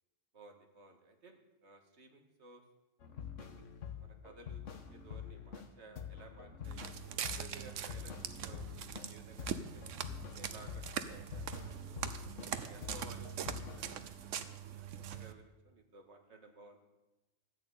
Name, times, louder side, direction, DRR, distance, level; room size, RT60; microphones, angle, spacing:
voice 1, 0.3-2.6 3.4-3.6 4.0-4.6 4.9-6.9 7.2-9.9 10.3-12.0 12.6-16.8, right 3 dB, 60° right, 3 dB, 2.0 m, -57 dB
sound 1, 3.0-5.7 6.0-9.1 9.4-12.5 12.8-14.0, left 8 dB, 80° left, 1.5 m, -47 dB
Walk footsteps, 6.6-15.3, right 8 dB, 80° right, 1.1 m, -42 dB
14.5 x 8.6 x 8.4 m, 1.1 s
omnidirectional pair, 1.3 m